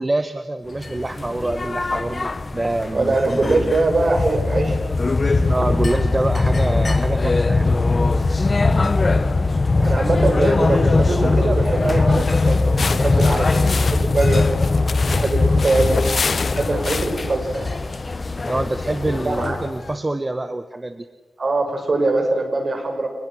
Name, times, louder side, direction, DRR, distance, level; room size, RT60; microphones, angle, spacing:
voice 1, 0.0-4.0 5.5-7.7 9.8-9.9 18.5-21.1, right 2 dB, 25° right, 9 dB, 1.2 m, -26 dB
sound 1, 0.8-19.9, left 3 dB, 40° left, 1.2 m, -20 dB
voice 2, 2.9-4.8 9.8-14.4 15.0-16.0 16.6-17.7 19.2-19.6 21.4-23.1, right 2 dB, 50° right, 5 dB, 6.0 m, -22 dB
sound 2, 12.1-17.4, left 4 dB, 60° left, 0.8 m, -29 dB
25.5 x 21.0 x 6.4 m, 1.3 s
cardioid pair, 70°, 0 cm